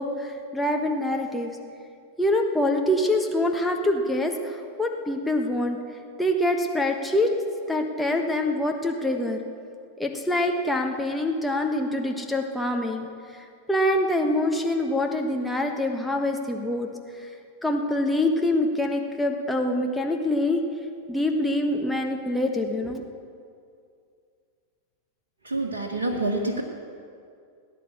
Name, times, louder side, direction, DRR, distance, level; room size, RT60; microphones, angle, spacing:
voice 1, 0.0-1.6 2.2-5.8 6.2-7.3 7.7-9.4 10.0-16.9 17.2-17.3 17.6-20.6 21.1-23.0, left 1 dB, 5° left, 2 dB, 1.3 m, -25 dB
voice 2, 25.4-26.6, right 2 dB, 70° right, 0 dB, 1.4 m, -27 dB
18.5 x 9.8 x 6.9 m, 2.3 s
figure-of-eight pair, 90°, 0 cm